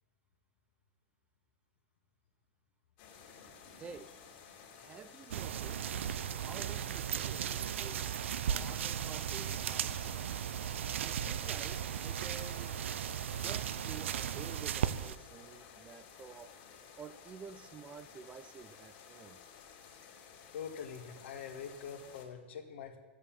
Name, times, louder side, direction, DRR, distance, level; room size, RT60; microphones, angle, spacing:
sound 1, 3.0-22.3, left 6 dB, 50° left, 2.6 m, -55 dB
voice 1, 3.8-4.2 4.8-6.0 6.4-10.4 11.0-12.8 13.2-16.5 17.0-19.4, right 6 dB, 20° right, 12 dB, 0.5 m, -50 dB
walking in forest, 5.3-15.2, right 9 dB, 80° right, 0.5 m, -36 dB
voice 2, 20.5-23.0, left 7 dB, 75° left, 4 dB, 1.8 m, -44 dB
12.5 x 8.3 x 7.4 m, 1.3 s
hypercardioid pair, 145°, 7 cm